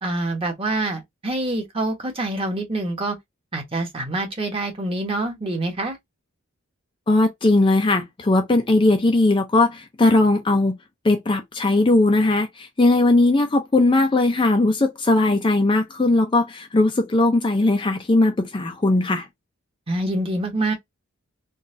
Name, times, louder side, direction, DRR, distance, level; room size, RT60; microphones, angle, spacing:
voice 1, 0.0-3.2 3.5-6.0 19.9-20.7, right 2 dB, 25° right, 1.1 m, -26 dB
voice 2, 7.1-10.8 11.0-19.3, left 2 dB, 25° left, 0.4 m, -19 dB
3.9 x 2.3 x 2.5 m
head